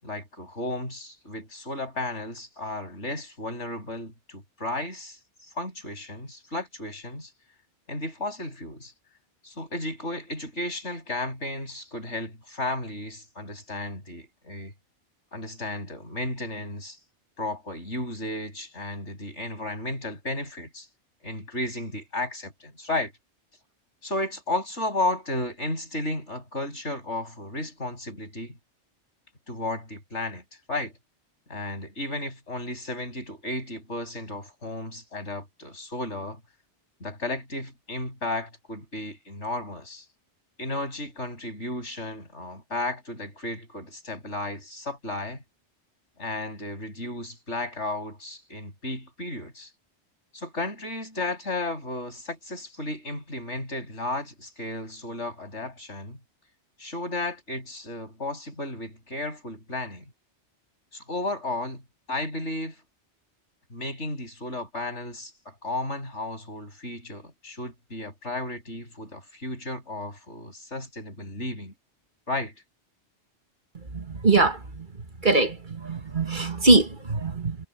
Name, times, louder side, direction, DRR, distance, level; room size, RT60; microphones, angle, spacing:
voice 1, 0.0-5.2 5.6-7.3 7.9-8.9 9.4-14.7 15.3-17.0 17.4-20.9 21.2-23.1 24.0-28.6 29.5-30.4 30.7-30.9 31.5-36.4 37.0-40.0 40.6-45.4 46.2-49.7 50.3-56.2 56.8-60.0 60.9-61.8 62.1-62.8 63.7-71.7 72.3-72.5, left 2 dB, 80° left, 7.6 m, -33 dB
voice 2, 74.2-74.6 75.2-75.5 75.8-77.6, right 3 dB, 45° right, 1.9 m, -21 dB
omnidirectional pair, 1.2 m